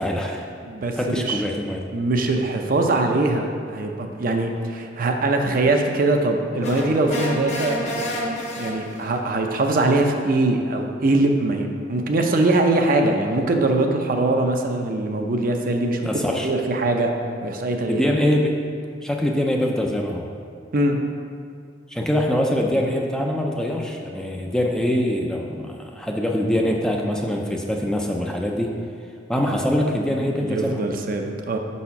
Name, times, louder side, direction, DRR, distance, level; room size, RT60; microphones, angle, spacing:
voice 1, 0.0-0.4 1.0-1.9 16.0-16.5 17.9-18.6 19.0-20.3 21.9-28.8 29.3-30.9, left 1 dB, 5° left, 0 dB, 0.4 m, -23 dB
voice 2, 0.6-1.4 1.9-8.1 8.5-16.0 16.3-17.1 17.4-18.0 20.7-21.0 30.2-31.6, right 2 dB, 50° right, 3 dB, 0.6 m, -22 dB
sound 1, 6.6-9.2, equal, 40° left, 0.8 m, -29 dB
5.4 x 4.2 x 5.8 m, 2.2 s
head